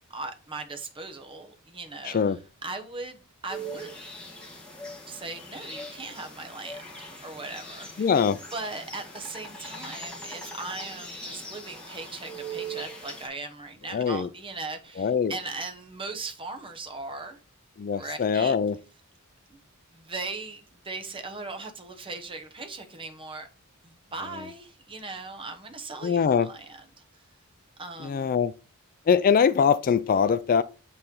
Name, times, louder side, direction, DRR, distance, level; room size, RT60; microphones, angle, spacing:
voice 1, 0.0-2.2 2.6-4.0 5.1-8.1 8.5-17.4 17.9-18.5 19.5-19.6 19.9-23.5 23.8-27.0 27.8-28.4, right 3 dB, 25° right, 1.0 m, -39 dB
voice 2, 2.0-2.4 8.0-8.4 13.9-14.3 15.0-15.4 17.8-18.8 26.0-26.5 28.0-28.5 29.1-30.6, left 6 dB, 40° left, 0.3 m, -23 dB
sound 1, 3.5-13.3, right 1 dB, 5° left, 1.7 m, -41 dB
8.3 x 3.2 x 3.7 m
head